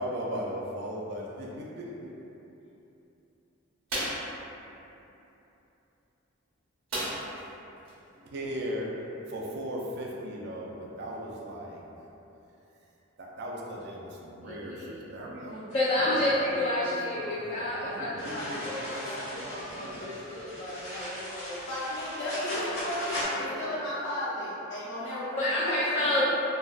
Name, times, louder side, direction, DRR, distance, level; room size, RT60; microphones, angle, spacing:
voice 1, 0.0-2.1 8.2-8.9 9.3-11.8 13.2-15.7 16.0-18.9 19.2-20.4, equal, 50° right, -2 dB, 0.3 m, -38 dB
sound 1, 3.9-4.3 6.9-7.5 7.8-7.9 8.3-8.5, right 1 dB, 80° right, 0.9 m, -32 dB
voice 2, 14.4-15.0 15.7-21.8 22.2-22.8 23.0-23.8 25.4-26.2, left 1 dB, 30° left, -10 dB, 0.3 m, -31 dB
sound 2, 18.2-23.2, left 1 dB, 75° left, 1.4 m, -38 dB
voice 3, 21.7-25.6 26.1-26.2, left 1 dB, 55° left, -9 dB, 0.7 m, -34 dB
3.3 x 2.2 x 2.3 m, 3.0 s
head